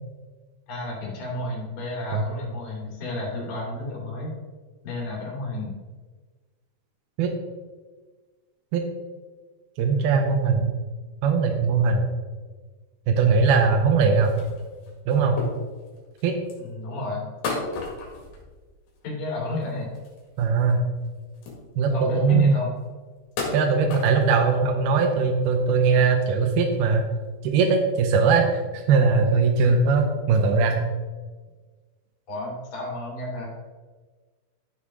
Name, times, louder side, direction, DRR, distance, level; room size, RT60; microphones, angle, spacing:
voice 1, 0.7-4.3 4.8-5.8 16.6-17.3 19.0-19.9 21.9-22.7 32.3-33.5, left 2 dB, 35° left, -4 dB, 3.3 m, -31 dB
voice 2, 9.8-10.7 11.2-12.1 13.1-14.3 15.1-15.4 16.2-16.4 20.4-20.8 21.8-22.5 23.5-27.0 27.4-30.8, right 5 dB, 75° right, 3 dB, 2.3 m, -20 dB
sound 1, 14.1-16.7 17.4-19.1 19.4-20.7 21.0-21.1 21.3-22.0 22.5-22.6 23.2-24.6 25.0-25.1 25.4-26.0 26.4-26.5 26.7-26.9 27.8-27.9, left 3 dB, 60° left, 3.3 m, -35 dB
13.0 x 6.4 x 3.7 m, 1.4 s
omnidirectional pair, 5.3 m